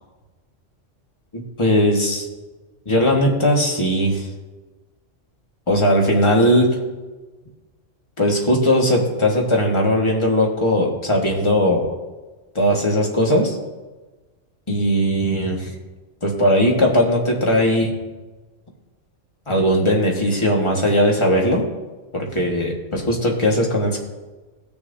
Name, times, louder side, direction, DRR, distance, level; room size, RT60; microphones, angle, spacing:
voice 1, 1.3-2.3 2.8-4.3 5.7-6.8 8.2-11.9 12.5-13.6 14.7-15.7 16.2-17.9 19.5-21.6 22.1-24.0, equal, 25° left, 0 dB, 1.6 m, -18 dB
19.0 x 6.8 x 2.7 m, 1.2 s
omnidirectional pair, 1.2 m